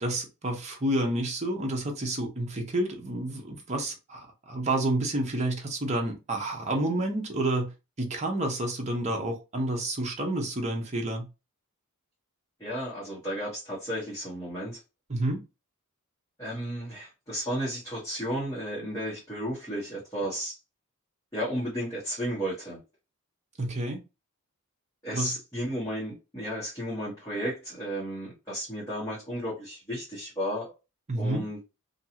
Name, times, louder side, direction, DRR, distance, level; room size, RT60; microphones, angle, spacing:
voice 1, 0.0-7.7 8.0-11.3 15.1-15.4 23.6-24.0 25.1-25.3 31.1-31.4, right 1 dB, 30° right, 0.7 m, -29 dB
voice 2, 12.6-14.8 16.4-20.6 21.3-22.8 25.0-30.7 31.1-31.6, equal, 15° left, 1.1 m, -33 dB
2.6 x 2.3 x 2.8 m
head